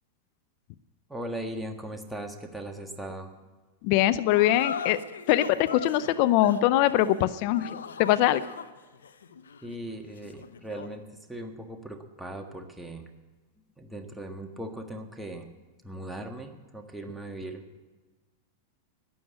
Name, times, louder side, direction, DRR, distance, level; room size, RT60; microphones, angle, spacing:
voice 1, 1.1-3.3 9.6-13.1 13.8-15.5 15.8-17.8, right 1 dB, 5° right, 3 dB, 1.6 m, -39 dB
voice 2, 3.8-5.0 5.3-8.4, left 13 dB, 55° left, 15 dB, 0.5 m, -23 dB
sound 1, 4.3-11.0, left 7 dB, 90° left, 0.7 m, -40 dB
12.5 x 9.4 x 8.2 m, 1.3 s
hypercardioid pair, 115°, 0 cm